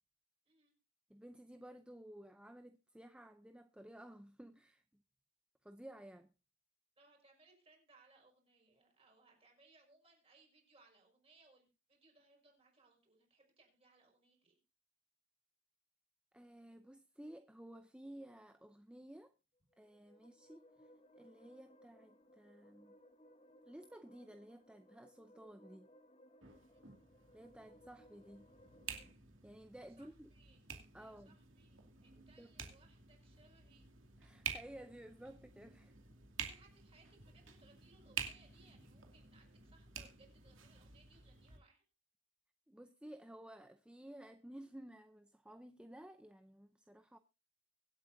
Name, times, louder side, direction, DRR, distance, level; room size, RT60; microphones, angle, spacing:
voice 1, 1.1-5.0 5.6-6.3 16.3-19.3 19.8-20.9 21.2-23.0 23.7-25.9 27.3-28.5 29.4-30.3 30.9-31.4 32.1-32.5 34.2-35.9 42.7-47.2, right 1 dB, 5° right, 0.5 m, -54 dB
voice 2, 7.0-14.6 20.2-20.4 26.5-26.8 30.0-30.6 31.0-33.9 36.4-41.8, right 3 dB, 30° right, 5.3 m, -68 dB
sound 1, 19.7-29.1, equal, 30° left, 1.2 m, -64 dB
sound 2, 26.4-41.6, right 7 dB, 75° right, 2.4 m, -50 dB
24.0 x 8.4 x 2.6 m
head